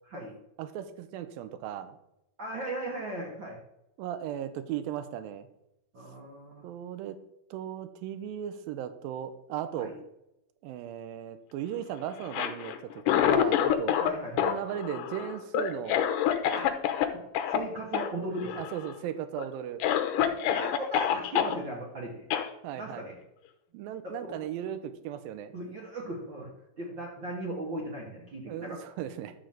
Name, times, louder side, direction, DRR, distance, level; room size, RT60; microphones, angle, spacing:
voice 1, 0.6-2.0 4.0-5.5 6.6-7.2 7.5-9.9 10.6-12.7 13.1-14.0 14.4-16.0 18.6-19.8 22.6-23.1 23.7-25.5 28.5-29.3, right 10 dB, 85° right, 10 dB, 2.5 m, -36 dB
voice 2, 2.4-3.6 5.9-6.7 9.8-10.0 14.0-14.5 16.5-16.7 17.1-18.6 20.2-22.3 22.8-23.2 24.0-24.4 25.5-28.8, right 1 dB, 50° right, -2 dB, 1.4 m, -38 dB
Cough, 12.2-14.1 14.4-17.1 17.4-17.6 17.9-18.1 18.4-18.9 19.4-19.5 19.8-21.5 22.3-22.5, left 10 dB, 75° left, 2.2 m, -27 dB
11.5 x 3.9 x 7.5 m, 0.84 s
omnidirectional pair, 4.2 m